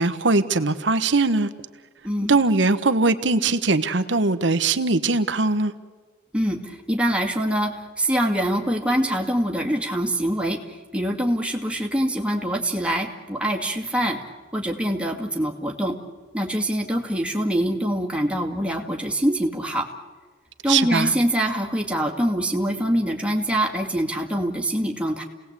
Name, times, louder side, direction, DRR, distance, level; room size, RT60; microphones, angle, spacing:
voice 1, 0.0-1.5 2.3-5.7 20.7-21.1, right 3 dB, 65° right, 11 dB, 1.1 m, -21 dB
voice 2, 2.0-2.3 6.3-14.2 14.5-16.0 16.3-19.9 20.6-25.2, right 1 dB, 5° right, 1 dB, 2.3 m, -24 dB
29.5 x 18.5 x 8.3 m, 1.5 s
head